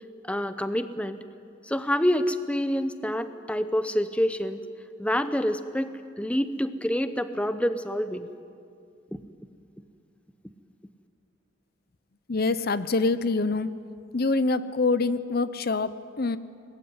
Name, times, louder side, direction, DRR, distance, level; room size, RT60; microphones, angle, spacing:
voice 1, 0.2-1.2 1.7-4.6 5.0-8.3 9.1-9.2, equal, 5° left, 11 dB, 0.7 m, -27 dB
voice 2, 12.3-13.7 14.1-16.4, left 3 dB, 50° left, 14 dB, 0.7 m, -25 dB
24.5 x 20.5 x 9.6 m, 2.5 s
head